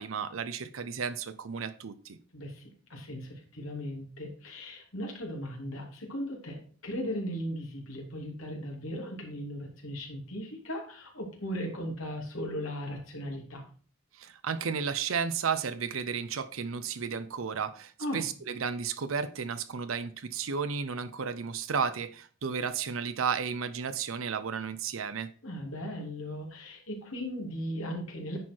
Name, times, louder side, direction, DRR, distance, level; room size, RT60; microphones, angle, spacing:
voice 1, 0.0-2.2 14.1-25.3, right 6 dB, 85° right, 11 dB, 0.6 m, -33 dB
voice 2, 2.3-13.6 18.0-18.3 25.4-28.4, equal, 85° left, 1 dB, 2.9 m, -37 dB
9.8 x 4.6 x 4.5 m, 0.42 s
head